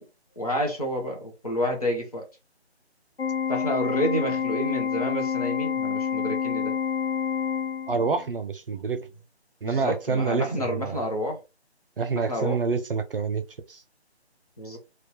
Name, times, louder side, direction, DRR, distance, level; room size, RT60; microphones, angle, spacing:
voice 1, 0.4-2.3 3.5-6.7 8.7-8.8 9.6-11.4 12.1-12.6 14.6-14.8, equal, 35° left, 0.7 m, -29 dB
Organ, 3.2-8.2, left 7 dB, 70° left, 0.7 m, -28 dB
voice 2, 7.9-9.1 9.6-11.0 12.0-13.4 13.7-13.8, right 5 dB, 55° right, 0.5 m, -27 dB
2.2 x 2.0 x 2.9 m
figure-of-eight pair, 170°, 33 cm